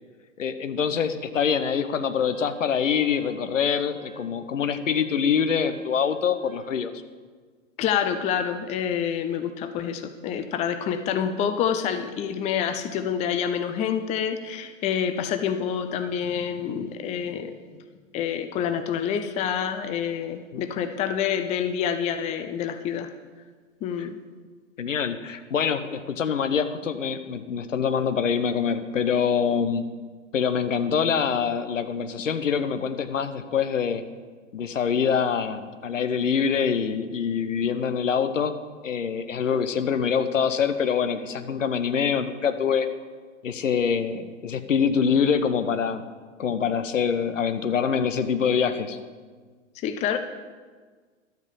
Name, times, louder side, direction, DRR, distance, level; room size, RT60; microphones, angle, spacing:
voice 1, 0.4-6.9 20.5-20.6 24.0-24.1 24.8-29.8 30.3-34.0 34.5-38.6 38.8-42.9 43.4-46.0 46.4-49.0, left 7 dB, 70° left, 10 dB, 1.0 m, -25 dB
Wind instrument woodwind instrument, 2.3-6.8, right 5 dB, 80° right, 1.8 m, -50 dB
voice 2, 7.8-17.5 18.1-23.1 23.8-24.2 49.8-50.2, left 8 dB, 15° left, 9 dB, 0.5 m, -27 dB
12.0 x 8.0 x 7.2 m, 1.5 s
figure-of-eight pair, 100°, 39 cm